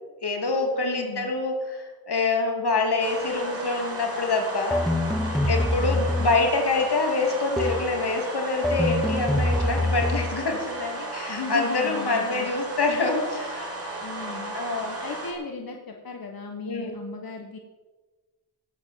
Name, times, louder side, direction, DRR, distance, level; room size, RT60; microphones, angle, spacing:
voice 1, 0.2-4.9 5.5-13.7 14.5-15.0 16.7-16.9, left 3 dB, 85° left, 2 dB, 2.9 m, -26 dB
voice 2, 0.8-1.3 5.7-6.0 11.3-12.5 14.0-14.5 15.0-17.6, left 4 dB, 65° left, 3 dB, 1.5 m, -36 dB
sound 1, 3.0-15.3, right 2 dB, 35° right, 4.1 m, -35 dB
sound 2, 4.7-6.5 7.6-8.0 8.6-10.4, left 1 dB, ahead, 1.2 m, -25 dB
17.5 x 8.1 x 7.3 m, 1.3 s
wide cardioid pair, 85°, 38 cm